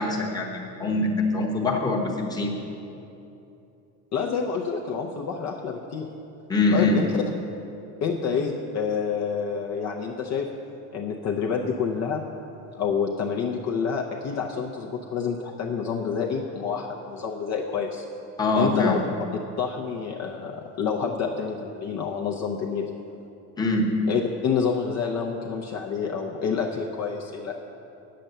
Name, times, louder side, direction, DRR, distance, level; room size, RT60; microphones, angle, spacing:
voice 1, 0.0-2.5 6.5-7.0 18.4-19.0 23.6-23.9, left 2 dB, 10° left, -1 dB, 1.0 m, -23 dB
voice 2, 4.1-6.1 6.7-7.2 8.0-10.5 10.9-12.2 12.7-18.0 18.6-19.0 19.6-22.9 24.1-27.5, left 6 dB, 40° left, 0 dB, 0.7 m, -28 dB
8.7 x 7.6 x 6.7 m, 2.8 s
cardioid pair, 155°, 41 cm